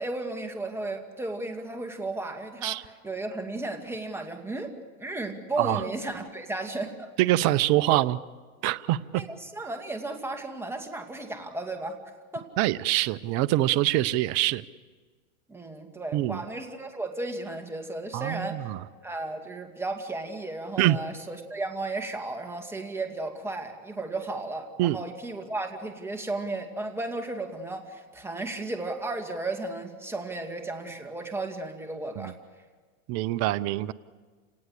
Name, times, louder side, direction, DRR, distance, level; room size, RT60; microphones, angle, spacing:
voice 1, 0.0-4.7 5.0-7.1 7.9-8.0 9.1-12.0 12.3-12.5 15.5-18.7 19.0-32.3, right 2 dB, 5° right, 4 dB, 2.3 m, -34 dB
voice 2, 7.2-8.2 8.6-9.2 12.6-14.6 16.1-16.4 18.1-18.8 20.8-21.0 24.8-25.0 32.2-32.3 33.1-33.9, right 15 dB, 40° right, 16 dB, 0.7 m, -24 dB
28.5 x 18.5 x 8.2 m, 1.5 s
hypercardioid pair, 120°, 43 cm